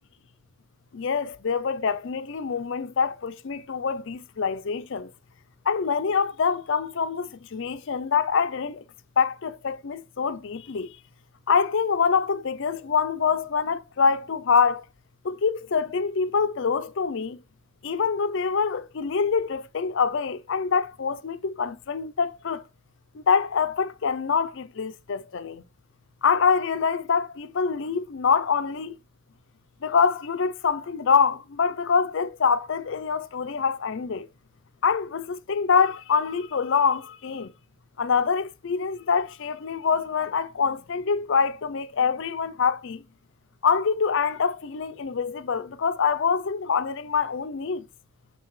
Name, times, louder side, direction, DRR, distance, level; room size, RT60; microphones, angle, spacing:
voice 1, 0.9-5.1 5.7-8.8 9.2-11.0 11.5-14.8 15.2-17.4 17.8-22.6 23.1-25.6 26.2-29.0 29.8-34.3 34.8-37.5 38.0-43.0 43.6-47.9, left 6 dB, 55° left, 0.5 m, -25 dB
7.0 x 5.7 x 3.1 m
head